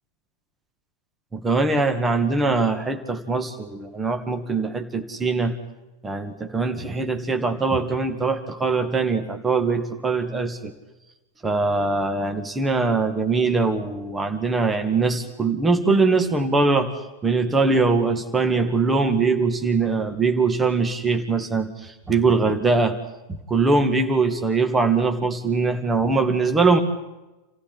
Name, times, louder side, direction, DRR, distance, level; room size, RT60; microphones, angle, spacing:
voice 1, 1.3-5.5 6.0-10.7 11.4-23.0 23.3-26.8, right 3 dB, 15° right, 7 dB, 2.1 m, -22 dB
28.0 x 15.5 x 9.9 m, 1.0 s
figure-of-eight pair, 90°, 0 cm